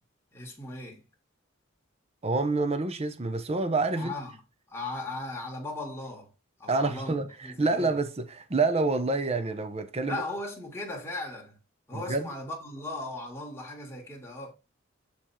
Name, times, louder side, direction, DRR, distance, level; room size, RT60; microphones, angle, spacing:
voice 1, 0.3-1.1 4.0-4.4 4.7-6.3 6.6-8.0 10.0-11.6 11.9-14.5, left 2 dB, 10° left, 2.2 m, -37 dB
voice 2, 2.2-4.1 6.7-10.2 11.9-12.3, right 3 dB, 30° right, 0.8 m, -27 dB
8.8 x 3.5 x 4.4 m
head